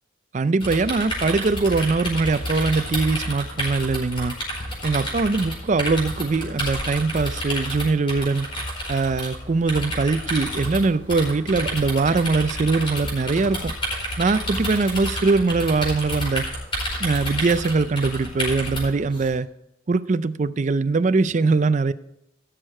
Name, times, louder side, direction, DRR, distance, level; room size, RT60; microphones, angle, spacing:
voice 1, 0.3-4.3 4.8-8.5 8.9-13.7 14.2-16.4 17.0-19.5 19.9-21.9, right 3 dB, 40° right, 13 dB, 0.4 m, -22 dB
sound 1, 0.6-19.3, equal, 25° left, 4.8 m, -30 dB
16.0 x 6.4 x 4.4 m, 0.81 s
head